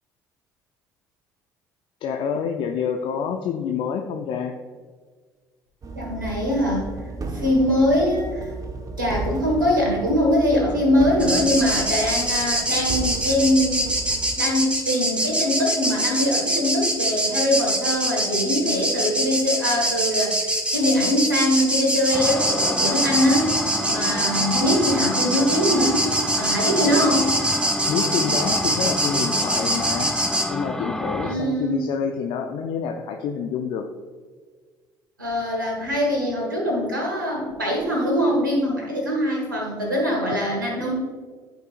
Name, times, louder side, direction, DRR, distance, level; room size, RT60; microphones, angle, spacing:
voice 1, 2.0-4.5 26.9-27.0 27.9-30.1 30.5-33.9, left 6 dB, 55° left, 4 dB, 0.6 m, -27 dB
sound 1, 5.8-14.4, right 3 dB, 35° right, 1.0 m, -34 dB
voice 2, 5.9-6.9 7.3-8.5 9.0-13.9 14.3-23.5 23.8-27.3 31.2-31.8 35.2-40.9, left 1 dB, 90° right, -1 dB, 1.6 m, -22 dB
sound 2, 11.2-30.4, right 1 dB, 10° right, 1.6 m, -24 dB
sound 3, 22.1-31.4, left 1 dB, 5° left, 0.6 m, -29 dB
13.0 x 5.4 x 2.5 m, 1.5 s
figure-of-eight pair, 55°, 10 cm